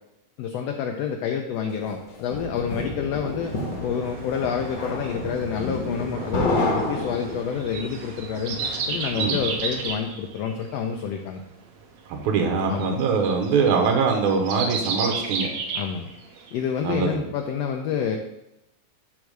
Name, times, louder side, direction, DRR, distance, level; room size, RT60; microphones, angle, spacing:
voice 1, 0.4-3.6 3.8-8.6 8.9-11.4 12.7-13.0 15.7-16.1 16.5-18.2, left 7 dB, 80° left, 4 dB, 1.5 m, -28 dB
sound 1, 1.8-7.7, left 2 dB, 50° left, 1.6 m, -29 dB
sound 2, 3.4-9.9, right 3 dB, 50° right, 2.5 m, -39 dB
sound 3, 6.5-16.5 16.9-17.0, right 4 dB, 70° right, 2.1 m, -31 dB
voice 2, 12.1-15.5 16.8-17.2, right 5 dB, 85° right, 2 dB, 2.5 m, -23 dB
7.9 x 3.6 x 6.5 m, 0.87 s
omnidirectional pair, 3.4 m